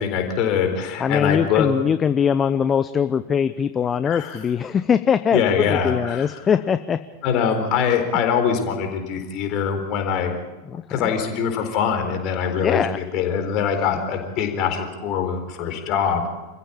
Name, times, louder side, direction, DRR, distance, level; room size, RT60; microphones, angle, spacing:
voice 1, 0.0-1.7 4.1-4.4 5.3-6.3 7.2-10.3 10.9-12.8 13.1-16.3, left 7 dB, 40° left, 5 dB, 4.1 m, -23 dB
voice 2, 1.0-7.0 10.7-10.8 12.6-13.0, left 7 dB, 20° left, 13 dB, 0.7 m, -21 dB
27.0 x 15.0 x 8.7 m, 1.1 s
figure-of-eight pair, 90°, 0 cm